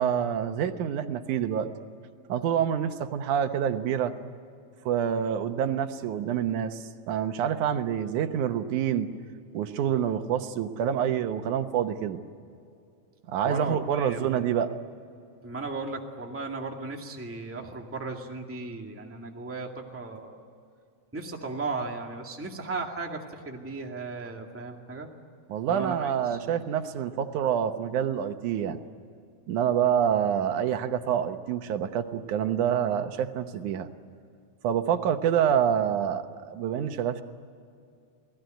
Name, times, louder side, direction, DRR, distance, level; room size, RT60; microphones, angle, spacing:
voice 1, 0.0-1.7 2.3-4.1 4.9-9.1 9.5-12.2 13.3-14.8 25.5-28.8 29.5-33.9 34.6-37.2, right 9 dB, 80° right, 8 dB, 2.5 m, -27 dB
voice 2, 13.4-14.4 15.4-20.4 21.1-25.1 25.7-26.4, right 3 dB, 5° right, 1 dB, 1.6 m, -36 dB
29.0 x 19.0 x 9.1 m, 2.4 s
omnidirectional pair, 3.4 m